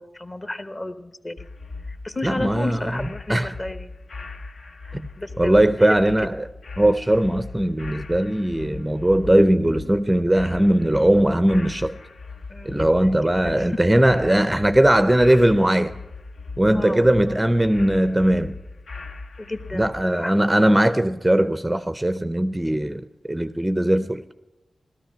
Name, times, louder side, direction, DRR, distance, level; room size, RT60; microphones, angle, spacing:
voice 1, 0.0-1.5 1.9-3.9 4.5-6.0 12.5-13.2 13.4-13.8 14.2-14.5 16.7-17.3 19.4-20.4, left 2 dB, 30° left, 10 dB, 1.0 m, -33 dB
sound 1, 1.4-20.0, left 3 dB, 70° left, 0.9 m, -39 dB
voice 2, 2.2-3.0 3.3-3.5 4.9-5.1 5.4-6.5 6.8-12.0 12.6-16.0 16.6-18.6 19.7-24.2, right 1 dB, 10° right, 11 dB, 0.5 m, -19 dB
16.0 x 13.0 x 5.7 m, 0.98 s
wide cardioid pair, 100°, 0 cm